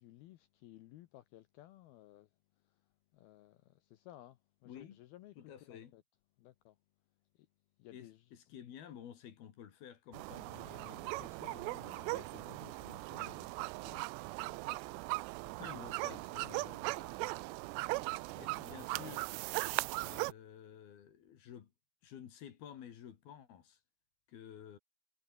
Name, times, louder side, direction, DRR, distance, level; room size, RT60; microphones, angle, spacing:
voice 1, 0.0-2.3 2.6-2.8 3.1-6.0 6.4-6.8 7.3-7.5 7.8-8.2 14.4-14.8 18.4-18.5, left 14 dB, 75° left, 2.3 m, -58 dB
voice 2, 4.7-5.0 5.4-6.0 7.9-14.0 15.6-17.5 18.3-19.3 20.0-21.7 22.0-23.8 24.3-24.8, left 9 dB, 60° left, 3.7 m, -53 dB
sound 1, 10.1-20.3, right 24 dB, 90° right, 2.4 m, -39 dB
omnidirectional pair, 5.4 m